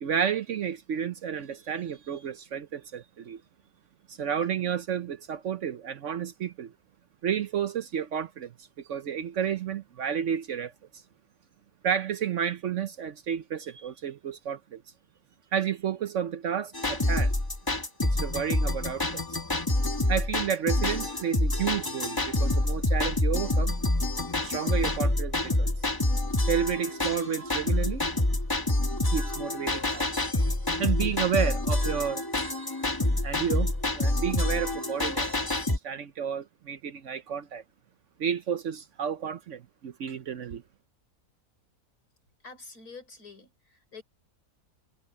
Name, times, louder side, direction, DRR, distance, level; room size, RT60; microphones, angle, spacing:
voice 1, 0.0-3.4 4.1-6.7 7.2-8.5 8.9-10.7 11.8-14.8 15.5-17.3 18.0-19.4 20.1-23.7 24.4-25.7 26.5-28.0 29.1-30.1 30.8-32.2 33.2-35.3 35.8-37.6 38.2-40.6, right 8 dB, 60° right, 1.0 m, -31 dB
sound 1, 16.7-35.8, left 1 dB, 15° left, 1.4 m, -27 dB
voice 2, 42.4-44.0, left 4 dB, 75° left, 6.0 m, -47 dB
omnidirectional pair, 1.6 m